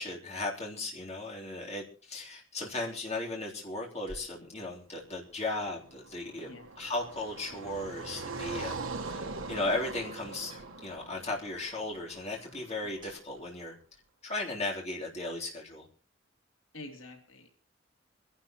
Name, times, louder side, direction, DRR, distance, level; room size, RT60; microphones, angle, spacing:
voice 1, 0.0-6.5 6.8-10.5 10.8-13.8 14.2-15.9, left 2 dB, 35° left, -2 dB, 3.6 m, -36 dB
sound 1, 3.9-13.6, right 1 dB, 25° right, 7.6 m, -58 dB
Car passing by, 5.6-12.7, right 3 dB, 75° right, 1.4 m, -42 dB
voice 2, 6.4-6.7 16.7-17.5, left 2 dB, 90° left, 3 dB, 2.8 m, -47 dB
25.5 x 11.5 x 3.0 m, 0.36 s
head